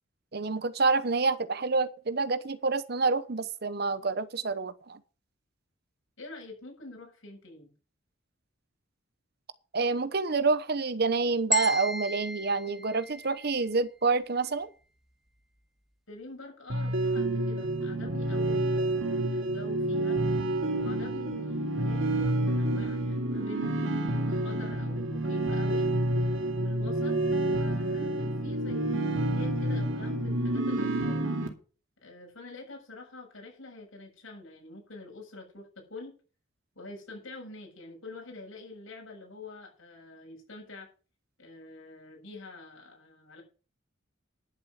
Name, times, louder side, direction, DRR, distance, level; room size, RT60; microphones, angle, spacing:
voice 1, 0.3-5.0 9.7-14.7, right 4 dB, 55° right, 0.9 m, -28 dB
voice 2, 6.2-7.7 16.1-20.2 20.8-25.9 26.5-31.3 32.0-36.1 36.8-40.9 41.4-43.4, left 2 dB, 85° left, 7.2 m, -46 dB
handbell c top, 11.5-13.7, equal, ahead, 1.4 m, -34 dB
sound 1, 16.7-31.5, right 1 dB, 75° right, 2.4 m, -29 dB
11.5 x 7.6 x 6.5 m
head